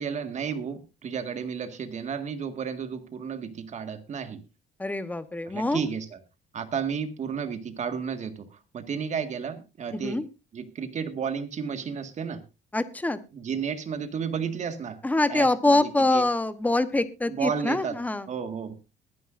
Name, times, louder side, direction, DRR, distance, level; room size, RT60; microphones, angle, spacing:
voice 1, 0.0-4.4 5.5-6.2 6.5-8.5 8.7-10.2 10.5-12.4 13.3-15.0 15.3-16.2 17.3-18.0 18.3-18.7, right 6 dB, 45° right, 9 dB, 1.8 m, -32 dB
voice 2, 4.8-5.9 9.9-10.2 12.7-13.2 15.0-18.3, left 2 dB, 10° left, 13 dB, 1.0 m, -25 dB
21.5 x 10.0 x 2.6 m, 0.27 s
cardioid pair, 110°, 17 cm